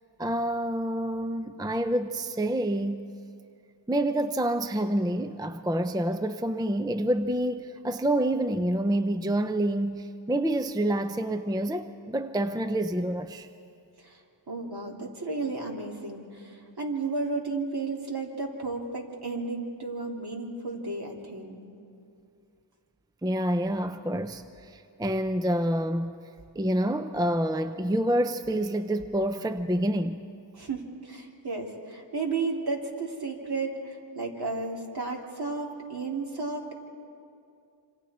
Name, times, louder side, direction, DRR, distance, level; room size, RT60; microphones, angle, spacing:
voice 1, 0.2-3.1 3.9-13.5 23.2-26.2 26.6-30.2, right 1 dB, 10° right, 9 dB, 0.6 m, -27 dB
voice 2, 14.0-21.6 30.5-36.7, right 3 dB, 55° right, -1 dB, 3.1 m, -33 dB
27.0 x 26.0 x 4.3 m, 2.5 s
wide cardioid pair, 85°, 47 cm